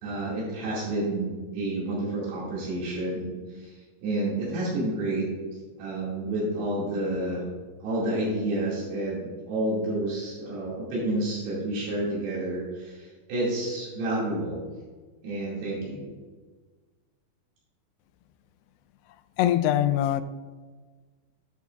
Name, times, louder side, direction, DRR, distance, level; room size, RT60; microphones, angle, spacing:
voice 1, 0.0-5.3 5.8-7.5 7.8-14.6 15.2-16.1, right 1 dB, 85° right, -7 dB, 4.3 m, -30 dB
voice 2, 19.4-20.2, left 12 dB, 90° left, 11 dB, 2.6 m, -22 dB
10.5 x 8.4 x 2.4 m, 1.4 s
omnidirectional pair, 4.6 m